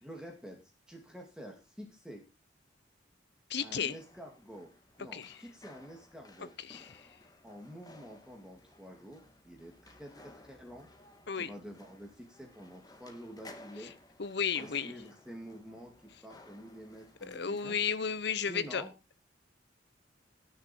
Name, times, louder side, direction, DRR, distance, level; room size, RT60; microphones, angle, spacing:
voice 1, 0.0-2.2 3.6-4.7 5.0-6.5 7.4-10.9 11.4-13.9 14.6-17.8 18.5-18.9, equal, 5° right, 2.7 m, -48 dB
voice 2, 3.5-4.0 5.1-5.4 6.4-7.2 11.3-11.5 13.8-13.9 14.2-14.9 17.2-18.8, left 6 dB, 60° left, 0.9 m, -34 dB
sound 1, 3.6-18.2, left 1 dB, 20° left, 1.8 m, -57 dB
19.0 x 6.8 x 4.6 m
head